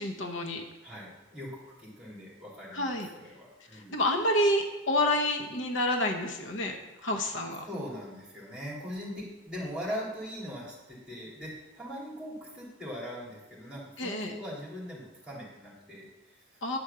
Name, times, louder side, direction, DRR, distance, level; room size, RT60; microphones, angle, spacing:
voice 1, 0.0-0.6 2.7-3.1 3.9-6.8 7.0-7.6 14.0-14.3 16.6-16.8, left 1 dB, 65° left, 3 dB, 0.9 m, -28 dB
voice 2, 0.8-1.5 1.8-4.0 7.6-16.6, equal, 5° right, -4 dB, 2.7 m, -41 dB
9.8 x 4.9 x 6.7 m, 1.1 s
head